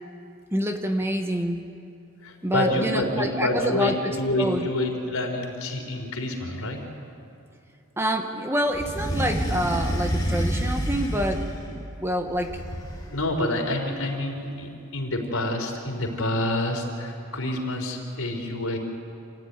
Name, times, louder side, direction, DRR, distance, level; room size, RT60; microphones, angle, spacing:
voice 1, 0.5-1.7 2.4-4.6 8.0-12.6, equal, 10° right, 5 dB, 1.2 m, -27 dB
voice 2, 2.2-6.8 13.1-18.8, left 1 dB, 70° left, 2 dB, 4.1 m, -27 dB
sound 1, 8.7-11.8 12.3-13.2, equal, 20° left, 3.4 m, -28 dB
27.0 x 15.5 x 9.6 m, 2.5 s
head